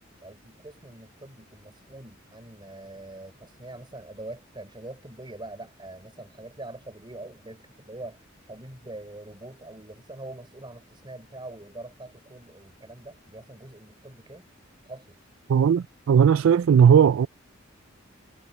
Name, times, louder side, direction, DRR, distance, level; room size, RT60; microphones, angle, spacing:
voice 1, 0.2-8.2 8.5-14.5 14.9-15.2, right 2 dB, 25° right, 3.8 m, -43 dB
voice 2, 15.5-17.3, right 7 dB, 75° right, 0.3 m, -17 dB
head